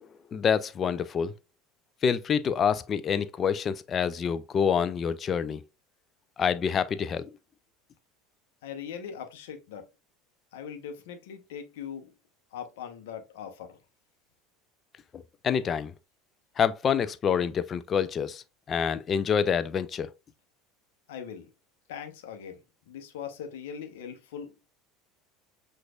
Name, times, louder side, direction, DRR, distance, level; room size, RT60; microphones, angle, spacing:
voice 1, 0.3-1.3 2.0-5.6 6.4-7.3 15.1-15.9 16.6-18.4 18.7-20.1, left 7 dB, 30° left, 0.4 m, -27 dB
voice 2, 8.6-9.9 10.5-12.1 12.5-13.8 21.1-21.5 21.9-22.6 22.9-24.5, left 8 dB, 65° left, 0.9 m, -40 dB
7.6 x 2.6 x 2.3 m
figure-of-eight pair, 70°, 0 cm